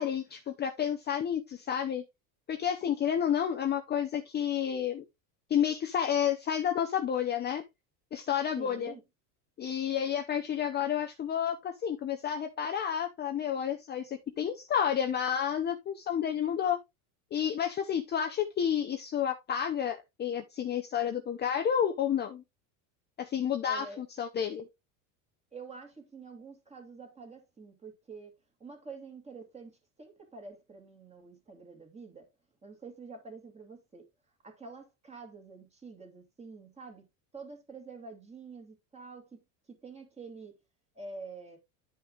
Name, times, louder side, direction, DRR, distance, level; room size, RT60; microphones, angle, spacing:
voice 1, 0.0-2.0 2.5-5.0 5.5-7.6 8.1-8.9 9.6-16.8 17.3-22.4 23.2-24.7, left 9 dB, 25° left, 0.7 m, -30 dB
voice 2, 8.6-9.0 23.6-24.0 25.5-28.3 28.6-32.3 32.6-34.1 34.4-37.0 37.3-39.4 39.8-40.5 40.9-41.6, right 4 dB, 15° right, 2.6 m, -47 dB
11.0 x 5.5 x 2.5 m
supercardioid pair, 140°, 42 cm